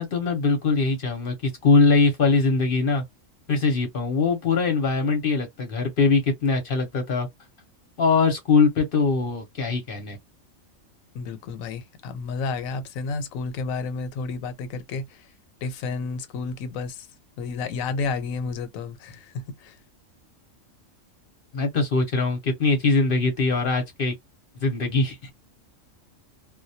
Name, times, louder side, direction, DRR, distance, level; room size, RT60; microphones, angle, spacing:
voice 1, 0.0-3.0 3.5-7.3 8.0-10.2 21.5-24.1 24.6-25.3, left 4 dB, 50° left, 0.8 m, -22 dB
voice 2, 11.1-15.3 15.6-17.1 17.4-19.8, left 4 dB, 85° left, 1.0 m, -31 dB
2.2 x 2.1 x 2.6 m
omnidirectional pair, 1.4 m